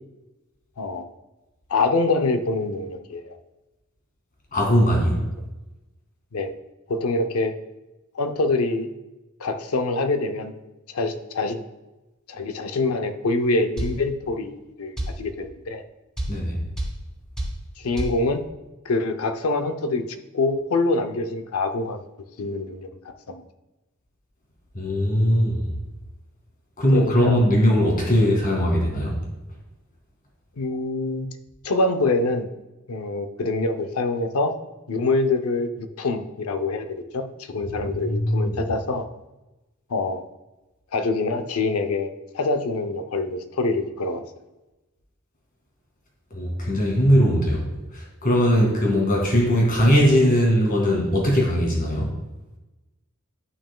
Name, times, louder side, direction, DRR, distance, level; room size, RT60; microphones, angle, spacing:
voice 1, 1.7-3.4 6.3-6.5 6.9-7.5 8.1-8.9 9.4-10.5 10.9-11.6 12.3-15.8 17.8-18.4 18.8-20.0 20.3-22.0 22.4-23.4 26.9-27.4 30.6-31.3 31.6-32.5 32.9-34.5 34.9-39.1 39.9-40.2 40.9-44.2, left 3 dB, 80° left, 8 dB, 0.6 m, -25 dB
voice 2, 4.5-5.2 16.3-16.6 24.7-25.6 26.8-29.2 38.0-38.6 46.3-47.6 47.9-52.1, equal, 40° left, -1 dB, 2.1 m, -20 dB
sound 1, 13.8-14.0 15.0-15.2 16.2-16.4 16.8-17.0 17.4-17.6 18.0-18.2, right 1 dB, 5° left, 2.6 m, -27 dB
11.0 x 6.0 x 2.3 m, 1.1 s
head